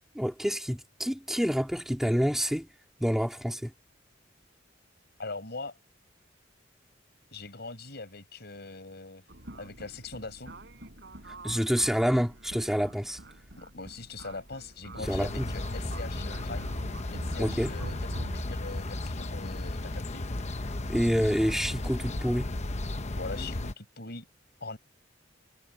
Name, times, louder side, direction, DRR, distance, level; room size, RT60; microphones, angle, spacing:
voice 1, 0.1-2.7 3.0-3.7 11.4-13.2 15.1-15.5 17.4-17.7 20.9-22.5, equal, ahead, 2.7 m, -27 dB
voice 2, 5.2-5.7 7.3-9.2 9.6-10.5 13.6-16.8 17.1-20.2 23.2-24.3 24.6-24.8, left 3 dB, 60° left, 6.3 m, -41 dB
sound 1, 9.3-18.5, right 1 dB, 65° right, 6.5 m, -44 dB
sound 2, 15.0-23.7, left 2 dB, 35° left, 1.0 m, -34 dB
head